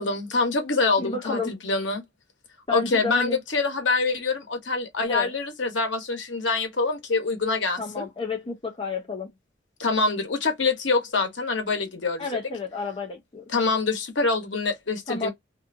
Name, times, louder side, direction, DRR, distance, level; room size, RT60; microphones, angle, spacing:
voice 1, 0.0-2.0 2.7-8.1 9.8-12.3 13.5-15.3, left 3 dB, 75° left, 1.0 m, -25 dB
voice 2, 1.0-1.5 2.7-3.4 5.1-5.3 7.8-9.3 12.2-13.5 15.1-15.3, left 4 dB, 30° left, 0.7 m, -31 dB
2.6 x 2.4 x 2.5 m
head